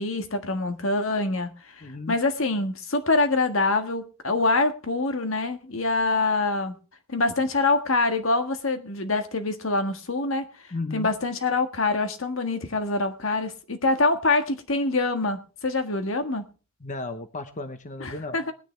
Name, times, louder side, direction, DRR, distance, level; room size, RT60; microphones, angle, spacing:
voice 1, 0.0-1.5 2.1-6.8 7.1-10.5 10.9-16.5 18.0-18.5, left 3 dB, 70° left, 1.6 m, -25 dB
voice 2, 1.8-2.1 10.7-11.1 16.8-18.4, left 2 dB, 35° left, 1.0 m, -34 dB
21.0 x 9.9 x 3.3 m
head